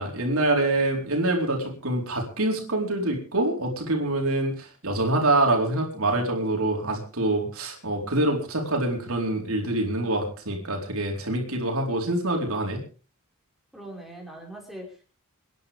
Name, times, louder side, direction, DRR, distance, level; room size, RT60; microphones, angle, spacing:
voice 1, 0.0-12.8, right 2 dB, 70° right, 1 dB, 4.3 m, -25 dB
voice 2, 13.7-15.0, right 1 dB, ahead, -2 dB, 5.1 m, -41 dB
29.0 x 10.5 x 3.6 m, 0.37 s
head